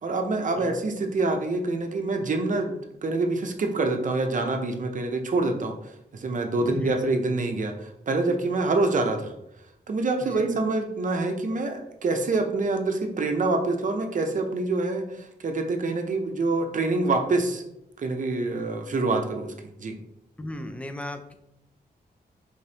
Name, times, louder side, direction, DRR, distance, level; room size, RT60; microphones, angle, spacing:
voice 1, 0.0-2.7 3.0-9.3 9.9-17.6 18.0-19.5 19.8-19.9, right 3 dB, 50° right, 4 dB, 0.6 m, -26 dB
voice 2, 6.6-7.1 10.2-10.4 20.4-21.4, left 1 dB, 5° left, 7 dB, 0.4 m, -36 dB
5.0 x 3.5 x 2.8 m, 0.85 s
wide cardioid pair, 125°, 17 cm